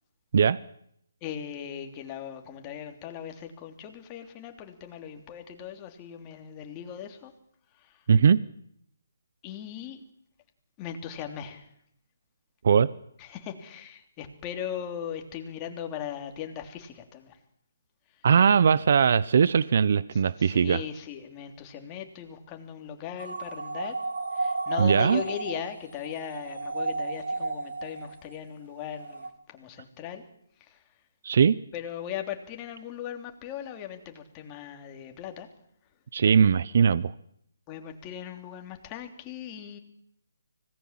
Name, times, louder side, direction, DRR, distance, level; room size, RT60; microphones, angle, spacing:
voice 1, 1.2-7.3 9.4-10.0 10.8-11.7 13.2-17.4 20.1-24.0 24.3-30.2 30.7-30.8 31.7-35.5 37.7-39.8, left 9 dB, 20° left, 4 dB, 3.1 m, -38 dB
voice 2, 8.1-8.4 12.6-12.9 18.2-20.8 24.8-25.2 31.2-31.6 36.1-37.1, right 6 dB, 55° right, 19 dB, 0.8 m, -20 dB
sound 1, 23.2-28.3 28.8-29.3, right 3 dB, 80° right, 2.9 m, -33 dB
25.5 x 18.5 x 7.5 m, 0.72 s
hypercardioid pair, 155°, 0 cm